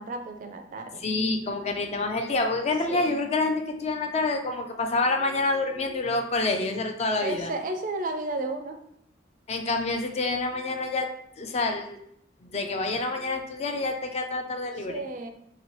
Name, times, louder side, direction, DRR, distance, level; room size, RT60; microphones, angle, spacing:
voice 1, 0.0-1.0 2.9-3.2 7.2-8.8 14.9-15.3, right 2 dB, 45° right, 6 dB, 0.4 m, -33 dB
voice 2, 1.0-7.5 9.5-11.1 11.4-12.0 12.4-15.0, left 3 dB, 35° left, 5 dB, 0.3 m, -27 dB
3.0 x 2.7 x 2.9 m, 0.73 s
head